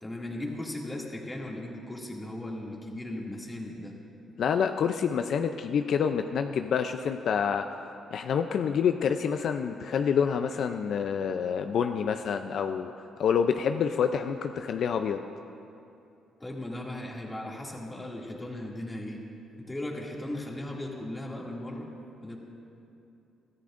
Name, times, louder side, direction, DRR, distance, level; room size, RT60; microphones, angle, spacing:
voice 1, 0.0-3.9 16.4-19.2 19.6-21.9 22.2-22.4, left 1 dB, 15° left, -2 dB, 2.4 m, -37 dB
voice 2, 4.4-7.7 8.1-12.9 13.2-15.2, left 7 dB, 65° left, 7 dB, 0.5 m, -27 dB
23.0 x 13.5 x 2.6 m, 2.7 s
cardioid pair, 90°, 0 cm